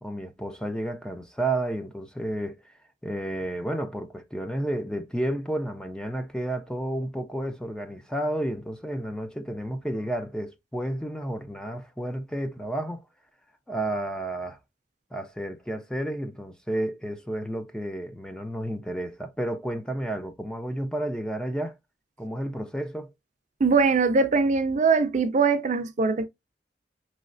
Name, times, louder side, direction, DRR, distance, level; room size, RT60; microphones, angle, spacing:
voice 1, 0.0-2.6 3.0-13.0 13.7-14.6 15.1-21.7 22.2-23.1, right 1 dB, 5° left, 0.5 m, -31 dB
voice 2, 23.6-26.3, right 4 dB, 45° right, 0.5 m, -22 dB
5.5 x 3.1 x 2.5 m
head